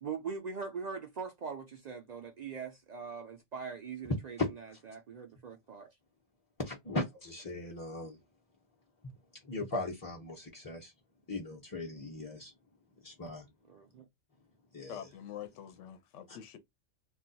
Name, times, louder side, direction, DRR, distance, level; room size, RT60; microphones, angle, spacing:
voice 1, 0.0-4.4 4.9-5.9 13.7-14.1, right 5 dB, 70° right, 0.4 m, -41 dB
voice 2, 4.4-4.8 6.6-8.2 9.0-9.1 9.4-10.9 11.3-12.5 13.0-13.5 14.7-15.1 16.3-16.4, left 2 dB, 25° left, 0.5 m, -38 dB
voice 3, 14.9-16.6, left 9 dB, 80° left, 0.9 m, -45 dB
2.3 x 2.2 x 3.8 m
omnidirectional pair, 1.2 m